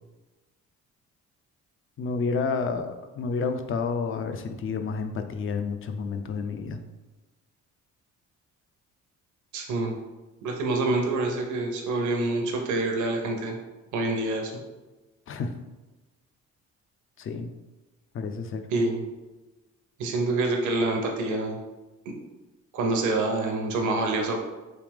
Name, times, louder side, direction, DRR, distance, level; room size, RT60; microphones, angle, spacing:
voice 1, 2.0-6.8 15.3-15.5 17.2-17.5 18.1-18.6, left 4 dB, 45° left, 7 dB, 0.4 m, -30 dB
voice 2, 9.5-9.9 10.4-13.6 13.9-14.5 18.7-19.0 20.0-21.6 22.1-22.2 22.7-24.4, right 2 dB, 75° right, 1 dB, 0.7 m, -26 dB
3.3 x 2.8 x 3.4 m, 1.1 s
cardioid pair, 90°, 30 cm